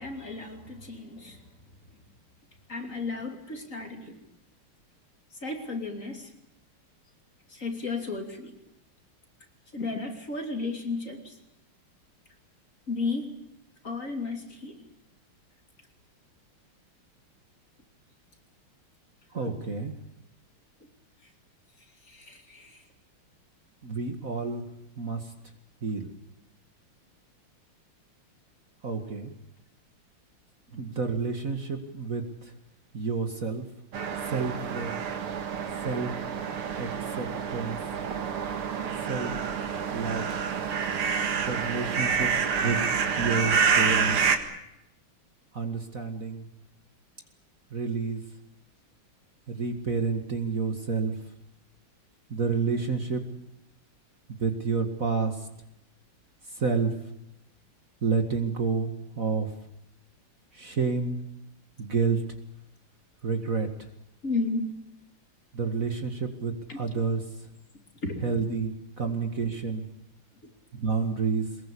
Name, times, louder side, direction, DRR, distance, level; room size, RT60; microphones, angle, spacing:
voice 1, 0.0-1.4 2.7-4.1 5.4-6.3 7.5-8.6 9.7-11.4 12.9-13.4 13.8-14.9 22.0-22.8 64.2-64.7 66.7-66.8 68.0-68.2, left 3 dB, 35° left, 4 dB, 3.3 m, -33 dB
voice 2, 19.3-20.0 23.8-24.6 25.0-25.3 25.8-26.1 28.8-29.3 30.7-32.5 32.9-33.6 34.2-34.9 35.8-36.1 36.8-37.8 39.0-39.3 39.9-40.3 41.3-42.3 42.6-44.2 45.5-46.5 47.7-48.2 49.5-51.1 52.3-53.2 54.3-55.5 56.5-56.9 58.0-59.5 60.5-61.2 61.8-62.2 63.2-63.9 65.5-67.2 68.2-69.8 70.7-71.5, right 4 dB, 40° right, 5 dB, 2.2 m, -29 dB
sound 1, 33.9-44.4, right 6 dB, 85° right, 2.7 m, -28 dB
23.5 x 21.5 x 8.5 m, 0.83 s
omnidirectional pair, 2.4 m